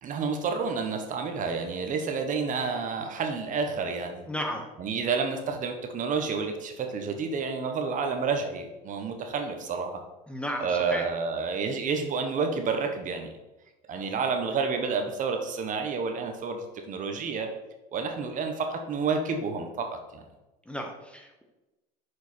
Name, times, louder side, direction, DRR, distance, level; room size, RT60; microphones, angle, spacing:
voice 1, 0.0-4.3 4.8-10.0 10.6-13.3 13.9-17.5 17.9-19.9 20.1-20.2, right 5 dB, 40° right, 5 dB, 1.0 m, -29 dB
voice 2, 4.3-4.6 10.3-11.0 20.7-21.4, equal, 5° left, 3 dB, 1.0 m, -34 dB
6.6 x 4.5 x 4.2 m, 1.0 s
supercardioid pair, 100°, 20 cm